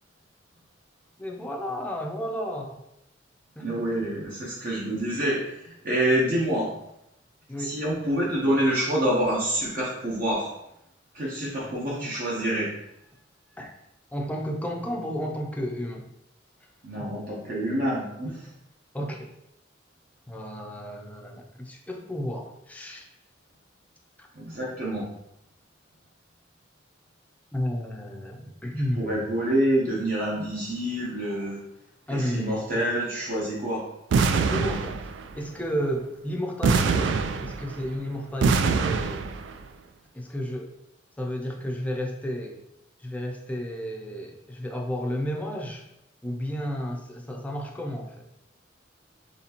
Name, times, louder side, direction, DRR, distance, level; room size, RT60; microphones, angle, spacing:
voice 1, 1.2-2.8 3.5-4.0 7.5-7.8 11.6-12.1 13.6-13.7 14.1-16.1 17.0-17.1 18.9-19.3 20.3-23.1 24.2-24.3 27.5-29.3 32.1-32.7 34.3-39.3 40.1-40.7 41.2-42.6 43.0-45.8 46.2-48.1, equal, 10° left, 1 dB, 0.5 m, -32 dB
voice 2, 3.6-6.7 7.6-10.5 11.1-12.7 16.8-18.4 24.3-25.1 29.0-31.6 32.2-33.8, right 1 dB, 50° right, -6 dB, 0.8 m, -27 dB
sound 1, 34.1-35.4 36.6-37.9 38.4-39.5, right 5 dB, 75° right, 0.3 m, -24 dB
4.1 x 3.2 x 2.9 m, 0.83 s
head